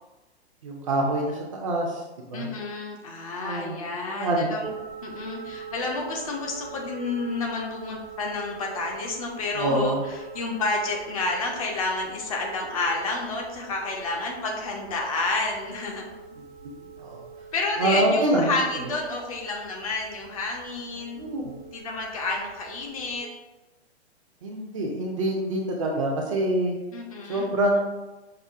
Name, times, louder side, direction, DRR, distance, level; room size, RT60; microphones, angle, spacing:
voice 1, 0.6-2.5 3.4-3.8 4.1-4.5 9.5-10.0 16.6-17.2 17.8-18.6 21.1-21.5 24.4-26.8 27.2-27.8, right 1 dB, 30° right, 0 dB, 0.5 m, -26 dB
voice 2, 2.3-4.7 5.0-16.1 17.5-21.2 21.7-23.3 26.9-27.5, left 3 dB, 30° left, 0 dB, 0.5 m, -30 dB
sound 1, 4.6-23.2, right 6 dB, 60° right, 0.8 m, -43 dB
5.4 x 2.1 x 2.4 m, 1.1 s
figure-of-eight pair, 115°, 34 cm